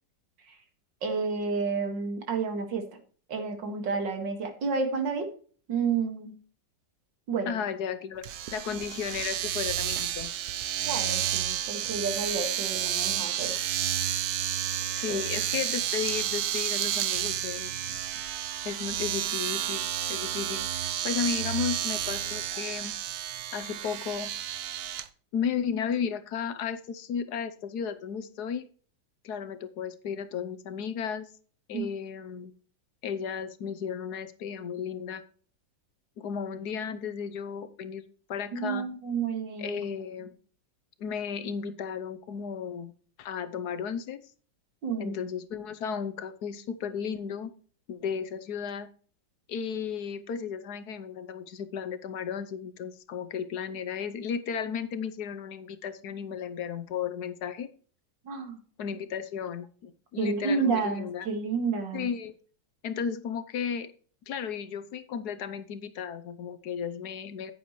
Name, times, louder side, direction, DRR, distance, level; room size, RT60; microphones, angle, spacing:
voice 1, 1.0-2.8 3.3-5.3 5.7-6.4 7.3-7.6 10.8-13.5 15.1-15.3 31.7-31.9 38.5-39.8 44.8-45.2 58.2-58.6 60.2-62.1, right 4 dB, 85° right, 5 dB, 2.6 m, -30 dB
voice 2, 7.5-8.2 8.5-10.3 14.9-18.1 18.6-19.8 20.1-22.9 23.5-24.3 25.3-28.7 29.2-31.3 31.7-32.5 33.0-35.2 36.2-38.0 38.3-38.9 39.6-40.3 41.0-42.9 43.2-44.2 45.0-47.5 47.9-48.9 49.5-57.7 58.8-61.3 61.9-62.4 62.8-63.9 64.3-67.5, left 7 dB, 65° left, 12 dB, 1.3 m, -34 dB
Domestic sounds home sounds, 8.2-25.1, right 11 dB, 65° right, 1.1 m, -31 dB
9.5 x 9.3 x 3.1 m, 0.43 s
omnidirectional pair, 1.9 m